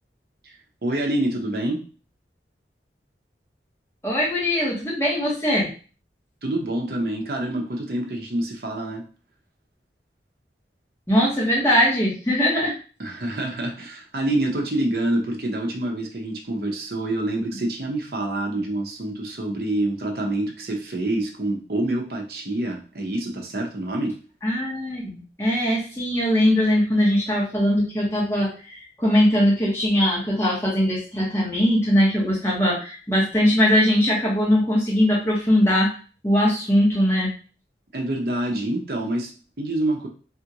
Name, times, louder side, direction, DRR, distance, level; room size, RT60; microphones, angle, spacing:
voice 1, 0.8-1.8 6.4-9.0 13.0-24.2 37.9-40.1, right 1 dB, 55° right, 1 dB, 0.7 m, -27 dB
voice 2, 4.0-5.7 11.1-12.7 24.4-35.9 36.2-37.3, equal, 15° left, -5 dB, 1.1 m, -21 dB
3.5 x 2.4 x 2.9 m, 0.37 s
head